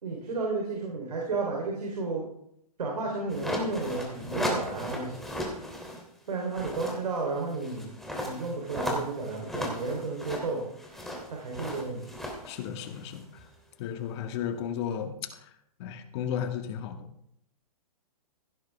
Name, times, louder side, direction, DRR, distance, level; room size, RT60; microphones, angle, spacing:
voice 1, 0.0-2.2 2.8-5.3 6.3-10.7 11.3-12.1, right 3 dB, 80° right, -1 dB, 3.7 m, -32 dB
sound 1, 3.3-6.0 6.4-13.4, left 1 dB, ahead, 3.0 m, -36 dB
voice 2, 12.5-13.2 13.8-15.1 15.8-17.0, left 8 dB, 45° left, 6 dB, 1.9 m, -33 dB
16.5 x 11.0 x 3.5 m, 0.75 s
hypercardioid pair, 130°, 20 cm